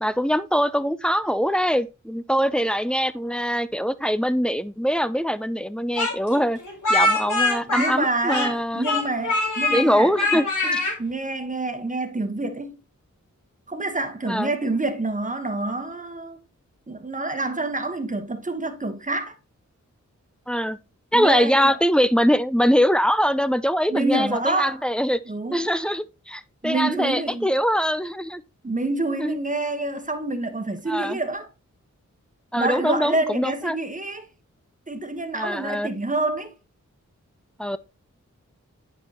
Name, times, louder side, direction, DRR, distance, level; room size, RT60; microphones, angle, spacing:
voice 1, 0.0-6.6 6.9-8.9 9.7-10.5 10.7-10.8 14.3-14.5 20.5-20.8 21.1-25.2 25.5-28.4 29.2-29.4 30.9-31.2 32.5-33.8 35.3-35.9 37.6-37.8, equal, 5° left, 0.4 m, -23 dB
Speech, 6.0-8.6 8.8-9.8 10.2-10.9, left 2 dB, 85° left, 2.5 m, -23 dB
voice 2, 7.6-12.8 13.7-16.4 16.9-19.3 21.1-21.7 23.9-24.8 25.3-25.7 26.6-27.5 28.6-31.5 32.6-34.3 34.9-36.5, right 2 dB, 25° right, 1.2 m, -27 dB
8.7 x 5.3 x 2.9 m
wide cardioid pair, 70°, 30 cm